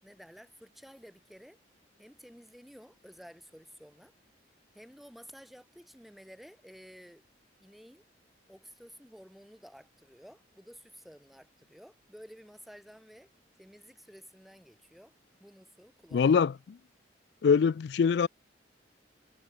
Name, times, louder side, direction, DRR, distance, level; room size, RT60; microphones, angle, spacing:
voice 1, 0.0-1.6 2.0-4.1 4.7-7.2 7.6-8.0 8.5-13.3 13.6-15.1 15.4-16.4, equal, ahead, 5.8 m, -53 dB
voice 2, 16.1-16.5 17.4-18.3, left 6 dB, 65° left, 0.3 m, -23 dB
head